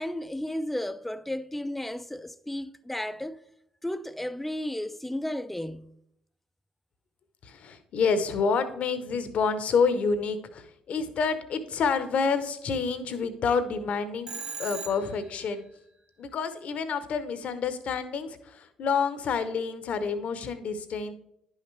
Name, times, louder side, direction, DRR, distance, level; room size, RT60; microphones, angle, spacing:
voice 1, 0.0-3.4 3.8-5.9, left 1 dB, 5° left, 0.4 m, -33 dB
voice 2, 7.4-14.3 14.6-15.6 16.2-21.1, left 5 dB, 60° left, 0.9 m, -28 dB
Telephone, 14.3-15.3, right 5 dB, 40° right, 1.5 m, -38 dB
10.5 x 5.7 x 3.3 m
hypercardioid pair, 60°, 3 cm